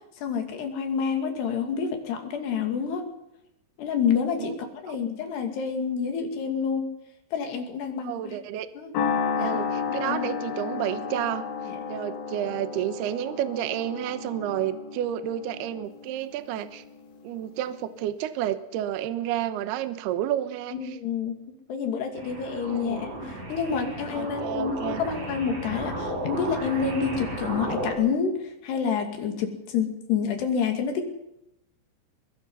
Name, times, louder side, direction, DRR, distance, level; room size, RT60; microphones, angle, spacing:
voice 1, 0.2-3.0 3.8-6.8 7.3-8.4 8.8-8.9 9.4-9.6 9.9-10.3 11.7-11.8 20.7-21.4 21.7-31.1, left 6 dB, 60° left, 4 dB, 4.4 m, -28 dB
voice 2, 8.0-8.7 9.4-11.5 11.9-16.8 17.2-21.0 22.6-23.0 24.1-25.0, right 11 dB, 70° right, 11 dB, 2.8 m, -30 dB
sound 1, 8.9-17.5, left 6 dB, 90° left, 4.6 m, -32 dB
sound 2, 22.2-27.9, right 1 dB, 40° right, 5.8 m, -34 dB
23.0 x 22.0 x 5.6 m, 0.83 s
omnidirectional pair, 5.5 m